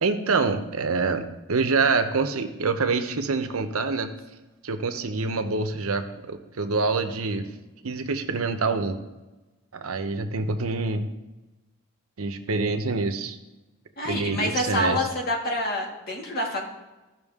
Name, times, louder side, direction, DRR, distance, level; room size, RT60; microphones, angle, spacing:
voice 1, 0.0-4.1 4.6-7.5 7.8-9.0 9.7-11.1 12.2-13.4 14.0-15.1, right 4 dB, 70° right, 9 dB, 0.7 m, -26 dB
voice 2, 14.0-16.7, left 1 dB, 45° left, -1 dB, 2.0 m, -27 dB
15.0 x 6.0 x 3.6 m, 1.1 s
head